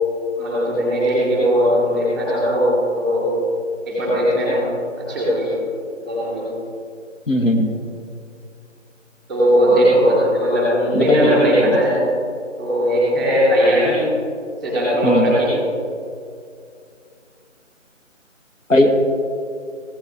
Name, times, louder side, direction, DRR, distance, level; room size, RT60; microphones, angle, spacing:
voice 1, 0.4-2.7 3.0-3.3 3.9-4.6 5.0-5.5 6.0-6.4 9.3-11.9 12.6-14.0 14.6-15.5, equal, ahead, -7 dB, 2.4 m, -18 dB
voice 2, 7.3-7.7 10.9-11.7 15.0-15.3 18.7-18.9, left 1 dB, 85° left, 3 dB, 1.8 m, -18 dB
16.0 x 13.0 x 2.9 m, 2.3 s
figure-of-eight pair, 160°, 38 cm